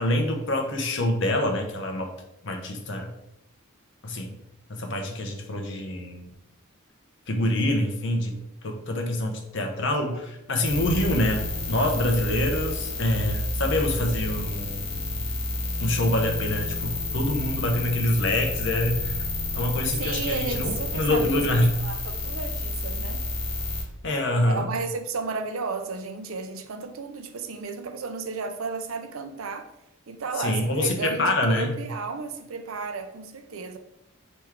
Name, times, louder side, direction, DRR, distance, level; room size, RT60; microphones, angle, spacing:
voice 1, 0.0-2.1 2.4-3.1 4.0-4.3 4.7-6.3 7.3-15.0 15.8-19.2 19.5-21.7 24.0-24.7 30.4-31.7, left 1 dB, 55° left, 0.8 m, -26 dB
sound 1, 10.6-23.8, left 2 dB, 25° left, 0.8 m, -30 dB
voice 2, 20.0-21.3 21.8-23.2 24.4-29.7 30.1-33.8, right 4 dB, 70° right, 0.5 m, -33 dB
3.6 x 3.0 x 4.6 m
head